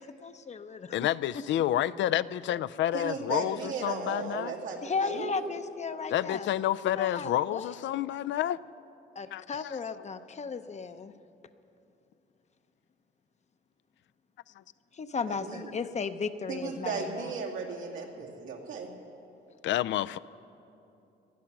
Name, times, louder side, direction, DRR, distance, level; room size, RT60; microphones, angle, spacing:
voice 1, 0.0-1.0 4.8-6.5 6.9-7.7 9.2-11.1 14.9-17.3, left 5 dB, 35° left, 11 dB, 0.7 m, -35 dB
voice 2, 0.9-4.5 6.1-8.6 9.3-9.8 19.6-20.2, left 12 dB, 70° left, 16 dB, 0.4 m, -29 dB
voice 3, 2.9-5.5 15.3-15.7 16.5-18.9, right 5 dB, 85° right, -1 dB, 2.3 m, -36 dB
19.0 x 12.0 x 6.0 m, 2.8 s
cardioid pair, 90°, 20 cm